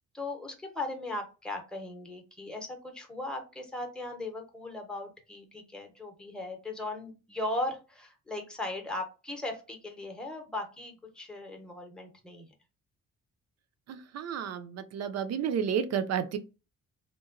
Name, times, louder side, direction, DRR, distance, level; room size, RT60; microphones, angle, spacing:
voice 1, 0.1-12.5, left 2 dB, 5° left, 0.7 m, -38 dB
voice 2, 13.9-16.4, right 8 dB, 60° right, 0.5 m, -31 dB
2.9 x 2.1 x 2.4 m
cardioid pair, 90°, 30 cm